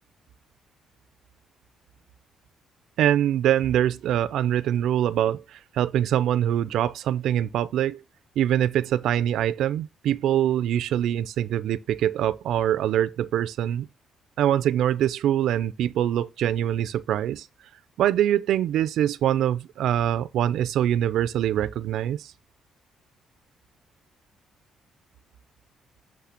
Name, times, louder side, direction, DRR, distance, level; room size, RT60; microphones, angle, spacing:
voice 1, 3.0-8.0 8.4-13.9 14.4-17.5 18.0-22.3, right 11 dB, 80° right, 0.4 m, -24 dB
8.5 x 3.2 x 5.7 m
cardioid pair, 90°, 0 cm